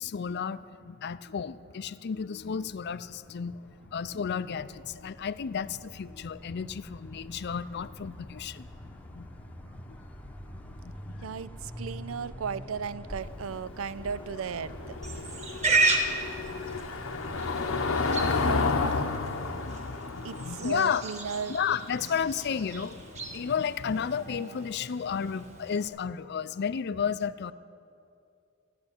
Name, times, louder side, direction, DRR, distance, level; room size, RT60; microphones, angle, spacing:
voice 1, 0.0-11.3 19.4-21.0 21.5-27.5, left 7 dB, 55° left, 15 dB, 0.4 m, -33 dB
sound 1, 2.4-18.3, equal, 5° left, 0.9 m, -46 dB
voice 2, 11.2-15.0 18.4-19.1 20.2-21.6, right 6 dB, 85° right, 16 dB, 0.5 m, -36 dB
Car passing by / Engine, 13.2-23.9, left 3 dB, 75° left, 0.9 m, -32 dB
Livestock farm animals working animals, 15.0-25.9, right 3 dB, 35° right, 1.4 m, -34 dB
14.5 x 9.4 x 8.9 m, 2.5 s
head